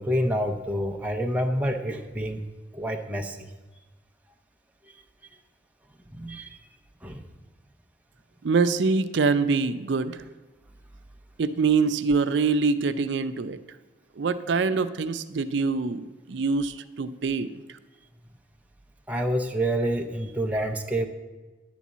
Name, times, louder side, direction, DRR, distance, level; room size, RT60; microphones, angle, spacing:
voice 1, 0.0-2.4 2.7-3.5 6.1-6.5 7.0-7.2 19.1-21.1, equal, 10° right, 2 dB, 0.5 m, -27 dB
voice 2, 8.4-10.2 11.4-13.6 14.2-17.5, right 4 dB, 70° right, 12 dB, 0.5 m, -24 dB
10.5 x 4.1 x 7.3 m, 1.2 s
head